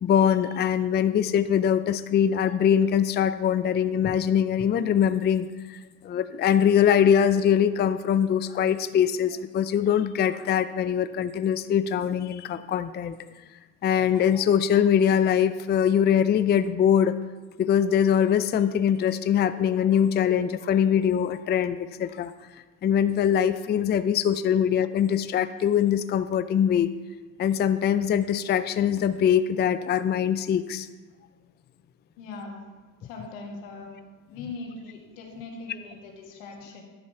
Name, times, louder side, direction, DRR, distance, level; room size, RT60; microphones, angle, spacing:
voice 1, 0.0-5.8 6.0-13.2 13.8-17.1 17.6-22.3 22.8-26.9 27.4-30.9, left 8 dB, 25° left, 12 dB, 0.4 m, -22 dB
voice 2, 32.2-32.7 33.0-33.9 34.3-36.8, left 3 dB, 85° left, 1 dB, 1.9 m, -40 dB
10.5 x 5.4 x 5.7 m, 1.3 s
supercardioid pair, 80°, 38 cm